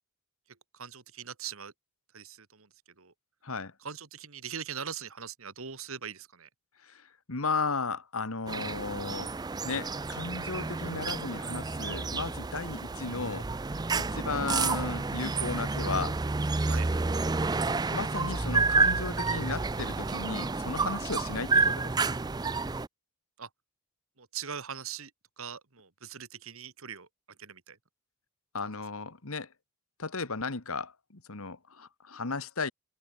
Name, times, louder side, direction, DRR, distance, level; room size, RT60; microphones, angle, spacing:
voice 1, 0.5-1.7 2.1-2.7 3.0-3.1 3.8-6.5 16.6-16.9 23.4-23.5 24.2-25.1 25.4-27.1 27.4-27.8 28.6-28.7, right 7 dB, 70° right, 1.9 m, -41 dB
voice 2, 6.8-9.3 9.6-13.5 13.9-16.2 17.9-21.8 28.5-29.5 30.0-32.7, left 4 dB, 75° left, 1.7 m, -35 dB
sound 1, 8.5-22.9, right 4 dB, 20° right, 0.4 m, -30 dB
head